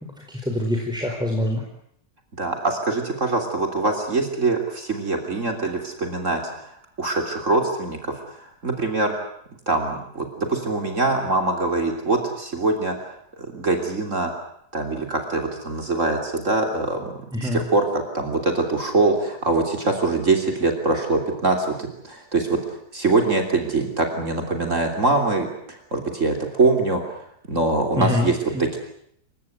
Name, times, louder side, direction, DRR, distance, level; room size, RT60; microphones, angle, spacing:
voice 1, 0.0-1.6 17.3-17.6 28.0-28.3 28.5-28.6, left 1 dB, 5° right, 1 dB, 4.4 m, -25 dB
voice 2, 2.4-9.1 9.7-13.1 13.4-14.3 14.7-22.6 22.9-27.1 27.5-28.8, right 3 dB, 50° right, 3 dB, 3.6 m, -23 dB
27.5 x 17.0 x 9.4 m, 0.72 s
omnidirectional pair, 1.6 m